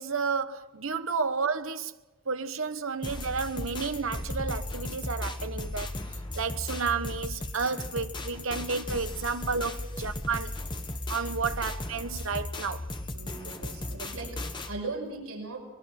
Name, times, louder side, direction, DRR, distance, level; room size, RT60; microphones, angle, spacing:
voice 1, 0.0-1.9 2.3-5.9 6.3-10.6 11.1-12.9, right 5 dB, 70° right, 1.1 m, -31 dB
sound 1, 3.0-14.7, left 1 dB, 20° left, 1.5 m, -36 dB
voice 2, 13.1-15.6, right 3 dB, 90° right, 5.6 m, -39 dB
24.0 x 20.5 x 5.9 m
head